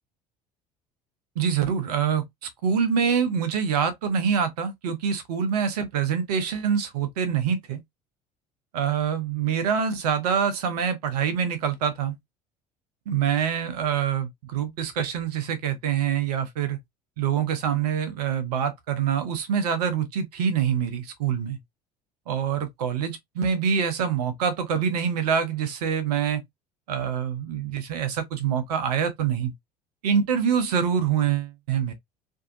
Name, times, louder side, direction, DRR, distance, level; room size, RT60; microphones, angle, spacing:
voice 1, 1.4-7.8 8.7-12.2 13.1-16.8 17.2-21.6 22.3-26.4 26.9-29.5 30.0-31.9, right 7 dB, 70° right, 0.8 m, -25 dB
2.6 x 2.2 x 2.6 m
figure-of-eight pair, 65°, 21 cm